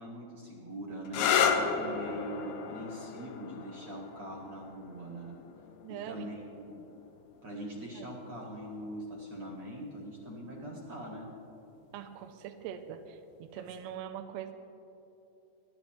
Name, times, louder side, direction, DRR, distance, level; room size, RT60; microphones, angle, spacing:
voice 1, 0.0-5.4 6.0-6.8 7.4-11.3, equal, 45° right, -2 dB, 2.0 m, -42 dB
sound 1, 1.0-8.5 9.5-10.0 13.5-13.9, left 7 dB, 80° left, 2.4 m, -34 dB
voice 2, 5.8-6.3 8.0-8.1 11.9-14.5, right 9 dB, 80° right, 6 dB, 2.5 m, -42 dB
28.5 x 12.0 x 3.1 m, 3.0 s
omnidirectional pair, 5.3 m